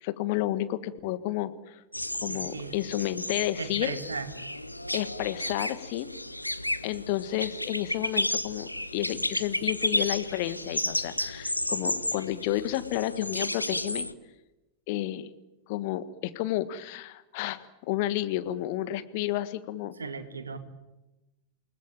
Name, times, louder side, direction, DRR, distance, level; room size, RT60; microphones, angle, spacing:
voice 1, 0.0-1.8 2.2-3.9 4.9-6.1 6.8-14.1 14.9-15.3 15.7-19.9, left 14 dB, 50° left, 12 dB, 1.6 m, -31 dB
sound 1, 1.9-14.1, left 1 dB, 85° left, 1.0 m, -33 dB
voice 2, 2.3-2.7 3.6-4.3 20.0-20.6, right 4 dB, 75° right, 8 dB, 2.4 m, -36 dB
29.0 x 19.5 x 9.1 m, 1.0 s
figure-of-eight pair, 90°, 0 cm